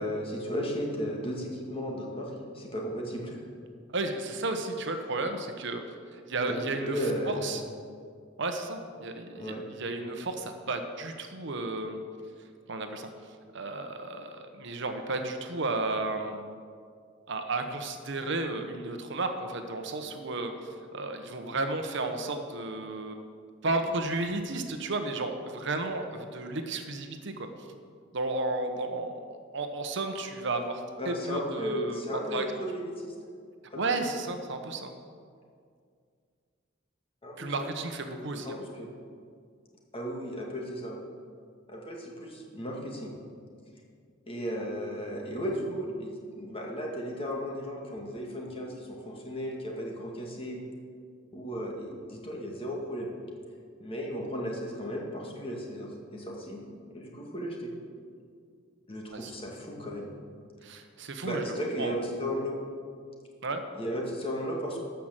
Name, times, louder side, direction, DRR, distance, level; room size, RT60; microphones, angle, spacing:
voice 1, 0.0-2.3 2.5-3.4 6.5-7.5 9.3-9.6 31.0-33.1 33.7-34.0 37.2-37.7 38.3-38.9 39.9-41.0 41.7-43.1 44.3-50.6 51.3-53.1 53.8-56.6 56.9-57.7 58.9-60.1 61.2-62.6 63.8-64.8, equal, 30° left, -1 dB, 1.9 m, -35 dB
voice 2, 3.9-5.8 6.1-7.6 8.4-12.0 12.7-13.1 13.5-16.4 17.3-23.2 23.6-27.5 28.1-32.4 33.7-34.9 37.4-38.6 59.1-59.3 60.6-61.5 61.8-62.0 63.4-63.6, right 2 dB, 60° right, 6 dB, 1.0 m, -33 dB
13.0 x 5.9 x 7.5 m, 2.2 s
head